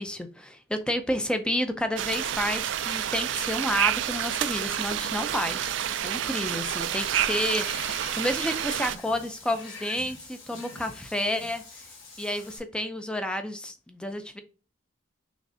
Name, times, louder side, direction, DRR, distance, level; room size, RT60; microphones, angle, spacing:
voice 1, 0.0-11.6 12.2-14.4, equal, 5° left, 0.5 m, -30 dB
sound 1, 2.0-9.0, right 10 dB, 65° right, 0.3 m, -29 dB
Water / Bathtub (filling or washing), 6.6-12.6, left 4 dB, 90° left, 1.9 m, -44 dB
6.2 x 3.2 x 2.6 m
head